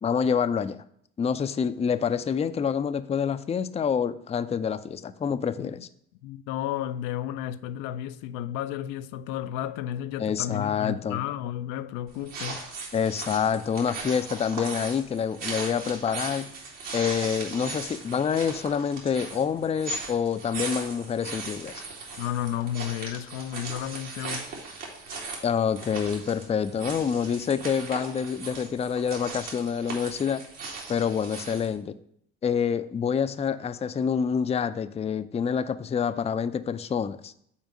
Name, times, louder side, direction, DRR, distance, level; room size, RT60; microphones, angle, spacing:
voice 1, 0.0-0.8 1.2-5.9 10.2-11.2 12.9-16.5 16.9-21.8 25.4-30.4 30.9-31.9 32.4-37.3, left 7 dB, 20° left, 0.4 m, -27 dB
voice 2, 6.2-12.6 22.2-24.4, left 11 dB, 75° left, 0.5 m, -32 dB
sound 1, 12.1-31.8, right 3 dB, 70° right, 2.2 m, -38 dB
5.6 x 4.4 x 6.1 m
hypercardioid pair, 60°, 33 cm